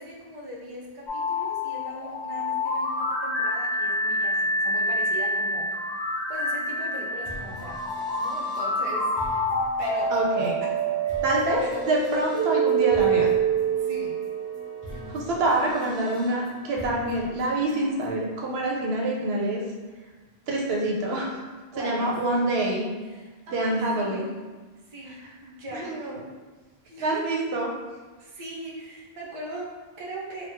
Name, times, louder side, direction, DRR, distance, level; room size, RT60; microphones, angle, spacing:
voice 1, 0.0-5.7 6.3-9.1 9.8-10.2 10.6-10.8 11.6-11.9 13.7-14.2 21.7-22.2 23.0-24.3 24.9-26.0 26.8-27.3 28.2-30.5, right 1 dB, 40° right, -3 dB, 0.6 m, -39 dB
sound 1, 1.1-14.9, right 2 dB, 25° left, 0.7 m, -26 dB
sound 2, 6.3-18.1, left 1 dB, 5° left, 1.2 m, -44 dB
voice 2, 10.1-10.5 11.2-13.3 15.1-19.6 20.5-21.3 21.8-22.9 23.5-24.3 25.1-25.2 25.7-26.2 27.0-27.7, right 2 dB, 70° right, -2 dB, 0.8 m, -26 dB
3.0 x 2.2 x 3.3 m, 1.3 s
omnidirectional pair, 1.1 m